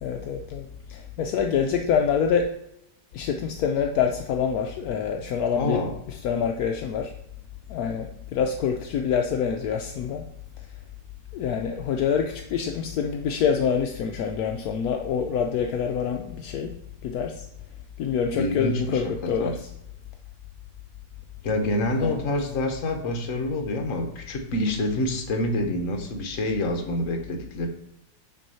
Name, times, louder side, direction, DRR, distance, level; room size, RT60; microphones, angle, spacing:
voice 1, 0.0-2.5 3.1-5.8 6.1-7.1 7.7-10.3 11.3-16.7 17.0-17.5 18.0-19.7 22.0-22.3, left 7 dB, 70° left, 3 dB, 0.9 m, -26 dB
voice 2, 5.5-5.9 18.3-19.5 21.4-27.7, left 1 dB, 50° left, 4 dB, 1.2 m, -27 dB
6.1 x 4.7 x 5.5 m, 0.83 s
omnidirectional pair, 2.0 m